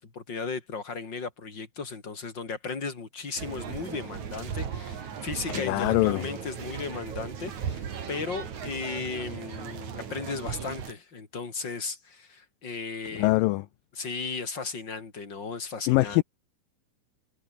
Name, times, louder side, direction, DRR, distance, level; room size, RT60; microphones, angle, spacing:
voice 1, 0.0-13.6 13.9-16.2, left 4 dB, 30° left, 4.3 m, -36 dB
sound 1, 3.4-10.9, right 7 dB, 50° right, 3.8 m, -37 dB
voice 2, 5.5-6.2 13.2-13.6 15.9-16.2, left 22 dB, 80° left, 2.1 m, -23 dB
omnidirectional pair, 4.3 m